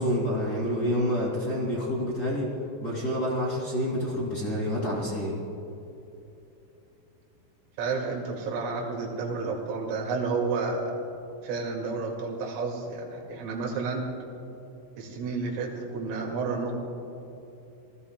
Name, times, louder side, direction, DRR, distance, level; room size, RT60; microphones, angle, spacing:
voice 1, 0.0-2.5 2.8-5.4, equal, 60° left, -4 dB, 1.0 m, -28 dB
voice 2, 7.8-10.9 11.4-14.0 15.0-16.7, right 4 dB, 80° right, -2 dB, 4.6 m, -31 dB
27.5 x 18.5 x 2.2 m, 2.9 s
omnidirectional pair, 5.8 m